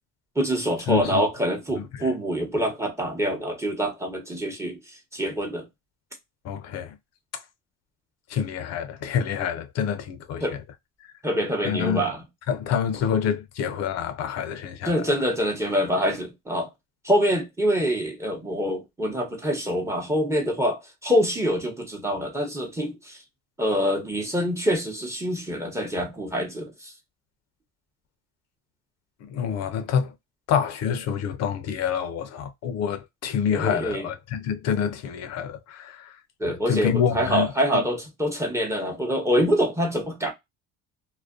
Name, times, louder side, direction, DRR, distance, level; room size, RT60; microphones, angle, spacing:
voice 1, 0.4-4.8 5.1-5.6 10.4-10.6 11.2-12.2 14.9-16.7 17.0-23.2 23.6-26.9 33.5-34.1 36.4-40.3, equal, 10° right, 0.8 m, -25 dB
voice 2, 0.9-1.2 1.9-2.1 6.4-6.9 7.3-7.4 8.3-10.6 11.6-12.0 12.5-14.9 29.2-30.1 30.5-36.2 36.5-37.8, left 8 dB, 55° left, 0.5 m, -27 dB
2.4 x 2.1 x 2.4 m
supercardioid pair, 95°, 30 cm